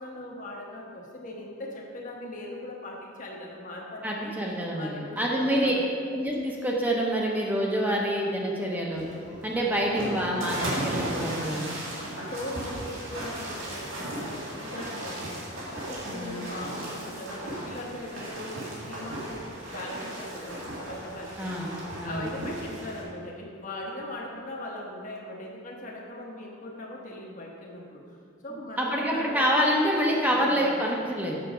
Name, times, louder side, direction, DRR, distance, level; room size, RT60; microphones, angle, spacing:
voice 1, 0.0-4.3 4.7-6.0 12.2-15.4 15.7-21.5 22.0-28.2 28.4-29.5 30.3-31.0, left 1 dB, 40° left, -2 dB, 1.1 m, -40 dB
voice 2, 4.0-5.7 6.1-9.0 9.4-11.7 16.1-16.4 21.4-21.7 22.0-22.2 28.8-31.4, equal, 10° right, -2 dB, 0.8 m, -27 dB
sound 1, 8.9-23.0, right 1 dB, 85° right, 2.2 m, -36 dB
6.9 x 6.6 x 5.0 m, 2.2 s
head